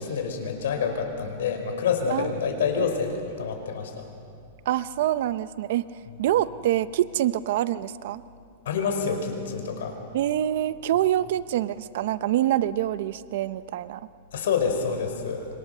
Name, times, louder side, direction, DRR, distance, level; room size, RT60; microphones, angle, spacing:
voice 1, 0.0-4.1 8.6-10.0 14.3-15.5, left 6 dB, 80° left, 5 dB, 5.1 m, -27 dB
voice 2, 2.1-2.9 4.7-5.9 6.2-8.2 10.1-14.0, right 12 dB, 60° right, 14 dB, 0.7 m, -26 dB
26.5 x 24.5 x 6.8 m, 2.5 s
supercardioid pair, 160°, 0 cm